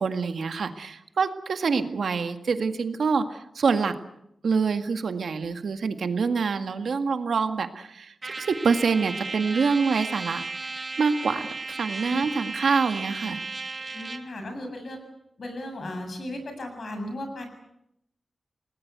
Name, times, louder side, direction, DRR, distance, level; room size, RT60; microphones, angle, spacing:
voice 1, 0.0-3.9 4.4-10.4 11.0-13.4, right 5 dB, 80° right, 8 dB, 1.9 m, -26 dB
Trumpet, 8.2-14.3, right 3 dB, 35° right, 1.9 m, -35 dB
voice 2, 13.9-15.0 15.4-17.4, left 1 dB, 55° left, 6 dB, 7.4 m, -35 dB
29.0 x 19.5 x 8.2 m, 0.79 s
wide cardioid pair, 140°, 0 cm